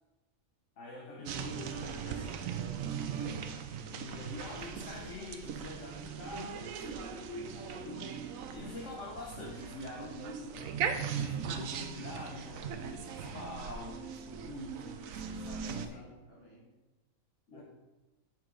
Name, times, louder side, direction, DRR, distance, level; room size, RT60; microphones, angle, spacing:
voice 1, 0.8-2.9 3.9-8.2 8.5-16.2 17.5-17.6, left 2 dB, 60° left, -2 dB, 1.3 m, -45 dB
sound 1, 1.3-15.9, right 7 dB, 70° right, 1.0 m, -39 dB
voice 2, 3.2-3.5 15.6-16.6 17.5-17.6, equal, 45° left, -5 dB, 2.7 m, -54 dB
7.5 x 6.0 x 3.9 m, 1.1 s
omnidirectional pair, 1.5 m